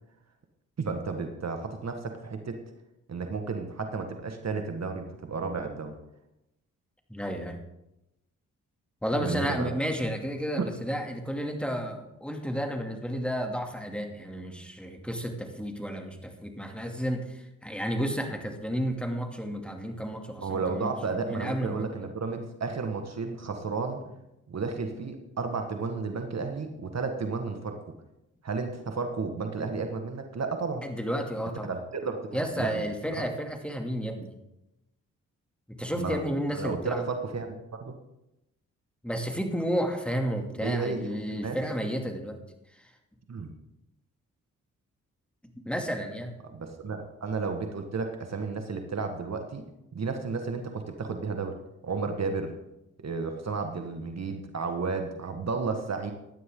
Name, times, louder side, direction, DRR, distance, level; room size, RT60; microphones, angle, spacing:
voice 1, 0.8-2.6 3.1-5.9 9.1-9.7 10.6-10.7 20.4-24.0 24.5-27.8 28.4-30.9 31.6-33.3 35.9-36.2 36.5-37.5 37.8-37.9 40.6-41.6 43.3-43.5 46.5-49.6 49.9-51.6 51.8-52.5 53.0-56.1, right 4 dB, 50° right, 5 dB, 1.7 m, -32 dB
voice 2, 7.1-7.6 9.0-20.9 21.2-22.0 30.8-31.7 32.3-34.3 35.8-37.0 39.0-42.4 45.6-46.3, equal, 5° left, 3 dB, 2.7 m, -32 dB
16.0 x 11.5 x 3.9 m, 0.89 s
supercardioid pair, 50°, 33 cm